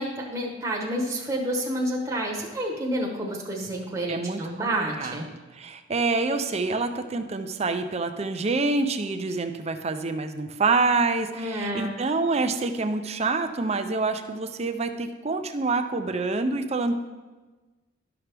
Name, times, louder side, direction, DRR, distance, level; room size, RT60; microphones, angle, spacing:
voice 1, 0.0-5.3 11.3-11.9, right 1 dB, 15° right, -3 dB, 1.0 m, -29 dB
voice 2, 4.1-16.9, right 3 dB, 30° right, 7 dB, 0.5 m, -27 dB
12.0 x 5.8 x 3.4 m, 1.2 s
head